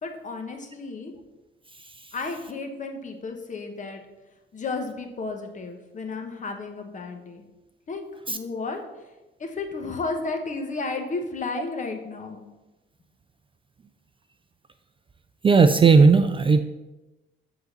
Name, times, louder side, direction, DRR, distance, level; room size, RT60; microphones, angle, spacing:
voice 1, 0.0-1.1 2.1-4.0 4.5-7.4 7.9-8.0 8.3-8.8 9.4-12.4, left 3 dB, 40° left, 4 dB, 1.2 m, -33 dB
voice 2, 15.4-16.6, right 4 dB, 25° right, 9 dB, 0.4 m, -16 dB
8.3 x 3.9 x 6.7 m, 1.1 s
cardioid pair, 125°, 20 cm